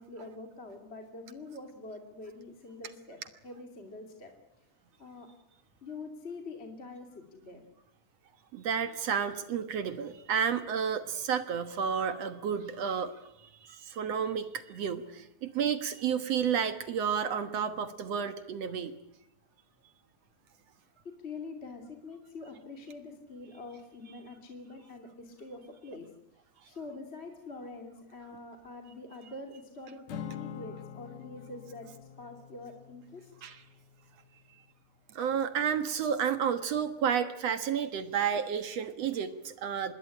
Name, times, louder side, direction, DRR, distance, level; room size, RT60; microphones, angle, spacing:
voice 1, 0.0-3.2 3.4-4.3 5.0-5.3 5.8-7.6 21.0-26.1 26.6-31.9 32.2-33.3, left 3 dB, 20° left, 4 dB, 2.5 m, -45 dB
voice 2, 8.5-18.9 33.4-33.6 35.1-39.9, right 7 dB, 60° right, 10 dB, 2.3 m, -31 dB
Acoustic guitar / Strum, 30.1-34.5, left 9 dB, 70° left, 2.5 m, -46 dB
26.5 x 20.5 x 9.9 m, 0.83 s
omnidirectional pair, 3.6 m